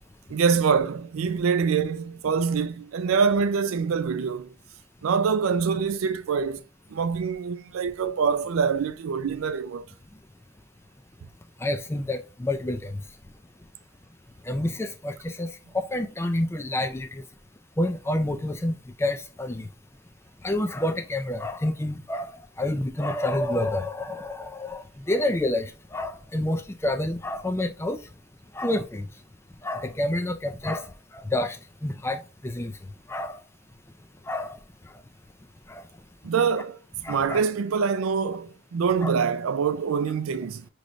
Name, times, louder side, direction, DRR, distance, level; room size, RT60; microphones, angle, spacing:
voice 1, 0.3-4.5 5.0-6.6 6.9-9.8 36.2-36.8 37.1-40.7, right 6 dB, 75° right, 0.4 m, -25 dB
voice 2, 11.6-12.9 14.5-15.5 15.7-17.2 17.8-19.7 20.4-22.3 22.6-28.0 28.5-29.1 29.6-30.9 31.3-31.6 31.8-32.7 33.1-33.4 34.3-34.6 35.7-35.8 37.0-37.4 39.0-39.1, left 1 dB, 10° left, 0.3 m, -28 dB
6.1 x 3.1 x 2.5 m
head